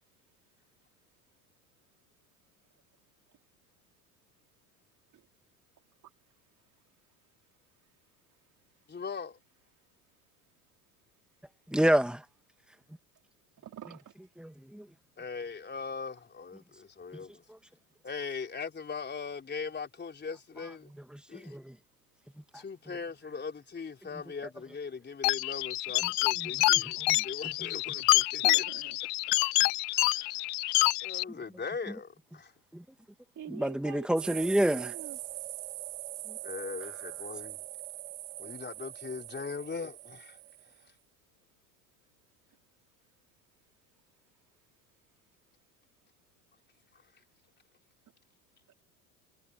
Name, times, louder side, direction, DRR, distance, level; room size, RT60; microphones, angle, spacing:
voice 1, 8.9-9.4 15.2-17.4 18.0-20.9 21.3-21.6 22.5-27.0 27.2-28.6 29.9-30.4 31.0-32.5 36.4-37.6 38.4-40.4, left 5 dB, 25° left, 4.1 m, -40 dB
voice 2, 11.7-12.2 14.4-14.8 21.4-21.7 27.1-27.2 32.7-32.8 33.5-34.9, right 1 dB, ahead, 2.0 m, -28 dB
voice 3, 13.6-14.0 28.4-29.0 33.4-35.2, right 10 dB, 40° right, 4.1 m, -45 dB
sound 1, 25.2-31.2, left 25 dB, 65° left, 3.4 m, -27 dB
sound 2, 34.2-40.8, right 17 dB, 80° right, 3.5 m, -42 dB
hypercardioid pair, 80°, 45 cm